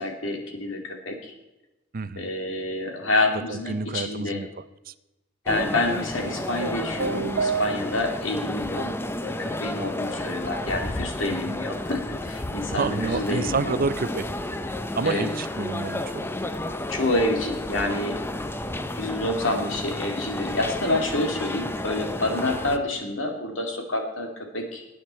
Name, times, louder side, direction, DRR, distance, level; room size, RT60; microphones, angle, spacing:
voice 1, 0.0-1.3 2.2-4.4 5.5-8.9 9.2-13.8 15.0-15.3 16.9-18.2 18.9-24.9, left 2 dB, 75° left, 3 dB, 2.5 m, -28 dB
voice 2, 1.9-2.3 3.5-4.5 4.9-5.0 11.3-11.6 12.7-14.3 15.0-16.3, right 4 dB, 45° right, 14 dB, 0.5 m, -29 dB
sound 1, 5.5-22.8, left 1 dB, 10° left, 0.6 m, -32 dB
sound 2, 6.2-8.3, right 4 dB, 70° right, 0.9 m, -29 dB
19.0 x 9.3 x 4.3 m, 0.98 s
head